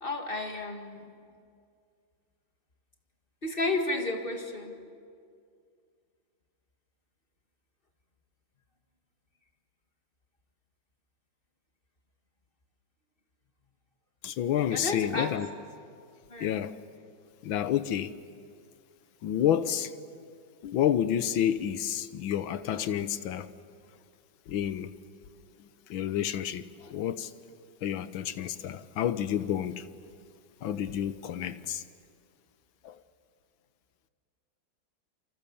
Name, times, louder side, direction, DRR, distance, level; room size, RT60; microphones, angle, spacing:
voice 1, 0.0-1.0 3.4-4.7 14.7-15.4 16.3-16.5, left 2 dB, 30° left, 2.1 m, -32 dB
voice 2, 14.2-15.5 16.4-16.8 17.4-18.1 19.2-19.9 20.6-23.5 24.5-24.9 25.9-27.3 27.8-29.9 30.6-31.8 32.8-33.0, left 10 dB, 85° left, 1.7 m, -29 dB
28.5 x 25.0 x 7.1 m
omnidirectional pair, 2.1 m